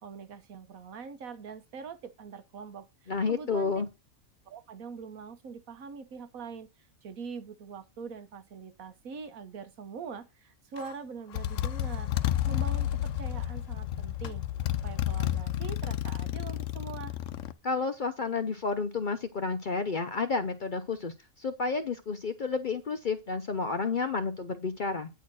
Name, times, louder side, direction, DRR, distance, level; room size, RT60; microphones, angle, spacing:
voice 1, 0.0-3.8 4.4-6.7 7.0-12.1 12.5-14.4 14.8-17.2, right 5 dB, 75° right, 1.5 m, -43 dB
voice 2, 3.1-3.9 17.6-25.1, left 4 dB, 50° left, 0.6 m, -31 dB
Motorcycle, 10.8-10.9 11.3-17.5, left 12 dB, 70° left, 1.0 m, -31 dB
9.2 x 4.4 x 6.1 m
omnidirectional pair, 1.5 m